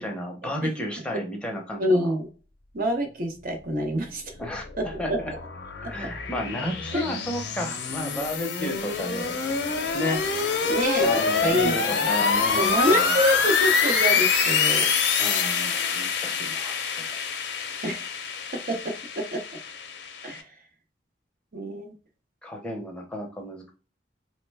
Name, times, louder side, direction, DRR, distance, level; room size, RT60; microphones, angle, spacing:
voice 1, 0.0-2.1 4.4-5.3 5.8-9.4 9.9-10.2 11.0-13.2 15.2-17.2 22.4-23.7, equal, 5° left, 1 dB, 0.6 m, -32 dB
voice 2, 1.8-2.3 2.7-4.3 4.8-5.2 5.8-6.1 6.9-7.0 10.7-11.7 12.5-14.9 17.8-18.1 18.7-18.8 19.3-19.4 20.2-20.5 21.5-21.9, equal, 55° right, 4 dB, 0.7 m, -26 dB
sound 1, 4.4-20.4, left 5 dB, 85° left, 0.6 m, -26 dB
3.1 x 2.1 x 3.3 m, 0.36 s
head